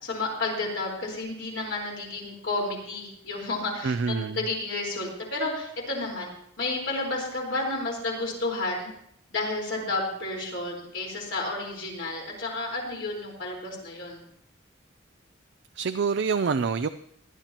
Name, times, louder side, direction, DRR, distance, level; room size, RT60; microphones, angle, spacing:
voice 1, 0.0-6.3 6.6-8.9 9.3-14.2, left 2 dB, 70° left, -1 dB, 4.4 m, -31 dB
voice 2, 3.8-4.4 15.8-16.9, right 5 dB, 65° right, 10 dB, 0.4 m, -26 dB
19.5 x 12.0 x 3.0 m, 0.70 s
head